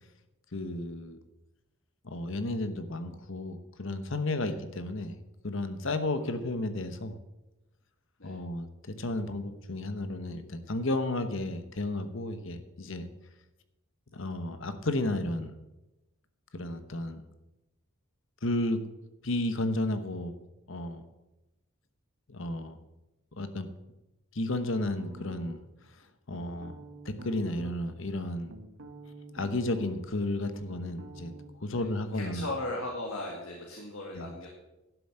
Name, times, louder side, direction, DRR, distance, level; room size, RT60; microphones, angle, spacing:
voice 1, 0.5-1.2 2.0-5.2 5.4-7.1 8.2-13.1 14.1-15.6 16.5-17.2 18.4-18.8 19.2-20.3 20.7-21.0 22.3-22.8 23.4-23.7 24.3-25.6 26.3-26.7 27.0-28.5 29.3-31.3 31.6-32.5 34.1-34.2, left 2 dB, 60° left, 10 dB, 1.1 m, -33 dB
voice 2, 6.1-6.6 8.2-8.4 31.7-34.5, left 2 dB, 80° left, -1 dB, 2.1 m, -38 dB
sound 1, 25.0-25.8 26.3-27.8 28.2-30.2 30.4-31.5, right 1 dB, 85° right, 1.4 m, -47 dB
12.0 x 7.2 x 7.8 m, 1.0 s
head